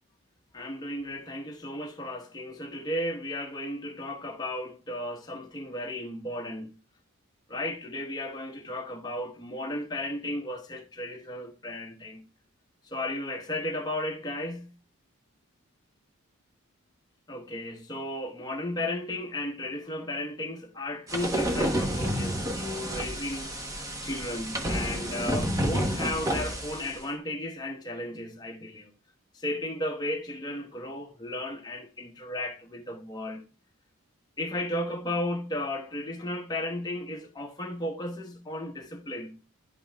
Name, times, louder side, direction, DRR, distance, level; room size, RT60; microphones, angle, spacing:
voice 1, 0.5-6.7 7.5-12.2 12.8-14.7 17.3-23.5 24.0-28.9 29.3-33.4 34.4-39.4, left 1 dB, 20° left, 0.9 m, -34 dB
sound 1, 21.1-27.0, equal, 15° right, 0.8 m, -30 dB
11.0 x 5.3 x 2.2 m
head